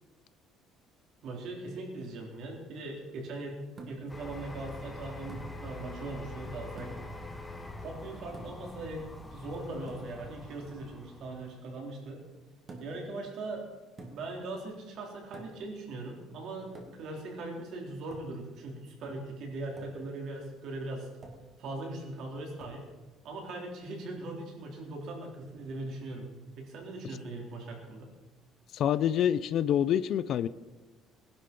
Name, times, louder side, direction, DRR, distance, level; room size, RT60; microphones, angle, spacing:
voice 1, 1.2-7.0 7.8-12.2 12.8-13.7 14.1-21.1 21.6-22.8 23.2-26.3 26.6-28.1, right 2 dB, 50° right, 1 dB, 3.9 m, -40 dB
sound 1, 3.8-4.2 5.3-5.6 6.8-7.2 8.3-8.7 9.9-10.2 12.7-13.1 14.0-14.4 15.3-15.7 16.8-17.2 18.1-18.4 19.8-20.0 21.2-21.6 22.6-22.9, right 2 dB, 25° right, 2.3 m, -48 dB
sound 2, 4.1-11.6, left 2 dB, 5° left, 1.5 m, -44 dB
voice 2, 28.7-30.5, left 10 dB, 45° left, 15 dB, 0.5 m, -26 dB
19.0 x 11.5 x 5.4 m, 1.2 s
cardioid pair, 160°, 0 cm